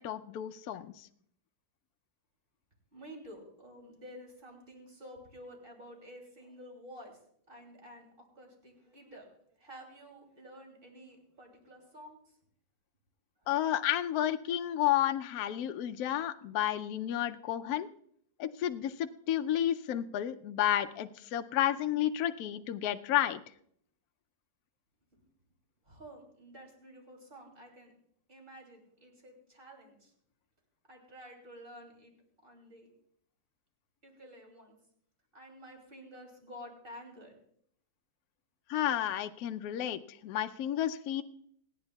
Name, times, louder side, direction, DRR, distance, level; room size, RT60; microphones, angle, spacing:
voice 1, 0.0-1.1 13.5-17.9 18.4-23.4 38.7-41.2, left 12 dB, 70° left, 8 dB, 0.8 m, -31 dB
voice 2, 2.9-7.2 7.5-8.1 8.3-12.2 25.1-25.2 25.8-27.9 28.3-30.1 30.9-32.1 32.4-32.9 34.0-34.8 35.3-37.4, equal, 25° right, 1 dB, 3.0 m, -51 dB
27.5 x 9.7 x 2.3 m, 0.67 s
omnidirectional pair, 2.1 m